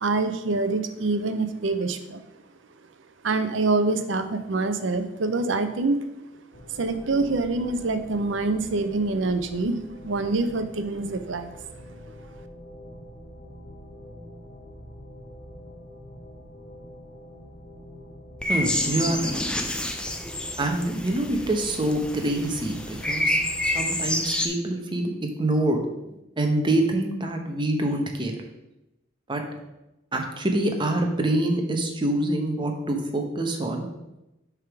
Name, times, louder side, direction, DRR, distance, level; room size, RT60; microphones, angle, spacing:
voice 1, 0.0-2.2 3.2-6.0 6.8-9.8 10.0-11.5, right 3 dB, 70° right, 9 dB, 0.6 m, -25 dB
sound 1, 6.5-23.8, equal, 50° left, 1.6 m, -45 dB
sound 2, 18.4-24.5, left 1 dB, 5° left, 0.5 m, -28 dB
voice 2, 18.5-19.4 20.6-23.4 23.6-25.8 26.4-28.4 29.3-29.4 30.1-33.9, right 1 dB, 25° right, 3 dB, 0.9 m, -25 dB
6.6 x 3.6 x 5.9 m, 0.94 s
head